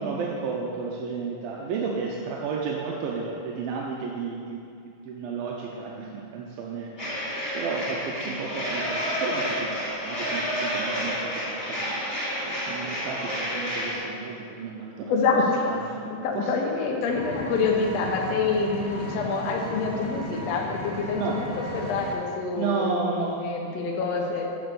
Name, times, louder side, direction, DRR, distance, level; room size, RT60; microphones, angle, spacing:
voice 1, 0.0-4.6 5.1-11.3 11.6-15.1 15.6-16.5 21.2-21.4 22.6-23.4, right 5 dB, 85° right, -2 dB, 2.6 m, -32 dB
sound 1, 7.0-14.0, equal, 15° left, 2.0 m, -30 dB
voice 2, 15.1-15.7 16.0-24.5, left 4 dB, 80° left, 0 dB, 1.5 m, -26 dB
Engine, 17.1-22.1, left 1 dB, 55° left, 2.3 m, -35 dB
7.8 x 6.2 x 6.7 m, 2.4 s
omnidirectional pair, 4.1 m